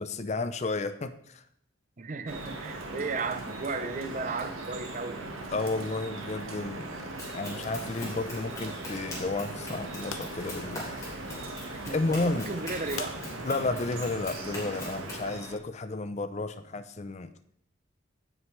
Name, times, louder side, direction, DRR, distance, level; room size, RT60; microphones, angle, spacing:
voice 1, 0.0-1.4 5.5-7.1 7.3-10.9 11.4-11.6 11.9-12.5 13.4-17.3, left 3 dB, 35° left, 11 dB, 0.4 m, -32 dB
voice 2, 2.0-5.2 11.7-13.6, right 4 dB, 40° right, 12 dB, 0.5 m, -35 dB
Drip, 2.3-15.6, right 2 dB, 85° right, 1.4 m, -39 dB
Run, 7.2-15.3, left 1 dB, 15° left, 3.0 m, -43 dB
sound 1, 7.6-13.4, left 5 dB, 85° left, 1.0 m, -46 dB
16.5 x 6.3 x 3.2 m, 0.68 s
head